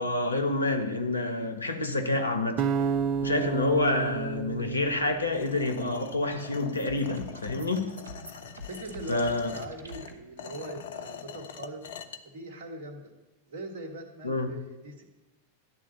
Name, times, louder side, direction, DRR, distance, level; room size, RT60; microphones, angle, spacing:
voice 1, 0.0-2.6 3.2-7.9 9.1-9.5 14.2-14.5, left 2 dB, 80° left, 6 dB, 0.9 m, -28 dB
sound 1, 2.6-5.7, right 7 dB, 35° right, 0.4 m, -31 dB
sound 2, 5.3-12.2, left 8 dB, 60° left, 0.6 m, -44 dB
sound 3, 5.8-10.1, right 1 dB, 70° right, 1.0 m, -46 dB
voice 2, 8.6-11.8 12.2-13.1 13.5-15.0, right 2 dB, 50° right, 4 dB, 1.4 m, -41 dB
10.5 x 3.7 x 7.0 m, 1.1 s
figure-of-eight pair, 90°, 0 cm